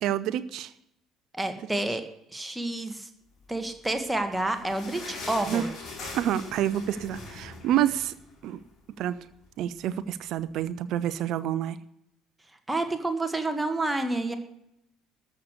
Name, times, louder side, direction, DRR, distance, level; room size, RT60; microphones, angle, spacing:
voice 1, 0.0-0.7 5.5-5.6 6.1-8.1 8.4-8.6 9.0-9.2 9.6-11.8, right 11 dB, 55° right, 15 dB, 0.7 m, -28 dB
voice 2, 1.3-2.0 2.3-3.1 3.5-5.7 12.7-14.3, right 2 dB, 10° right, 6 dB, 1.8 m, -29 dB
sound 1, 3.9-8.7 9.1-9.2 9.4-9.6 10.3-10.4, left 3 dB, 45° left, 4.5 m, -41 dB
13.5 x 6.6 x 8.3 m, 0.78 s
figure-of-eight pair, 55°, 0 cm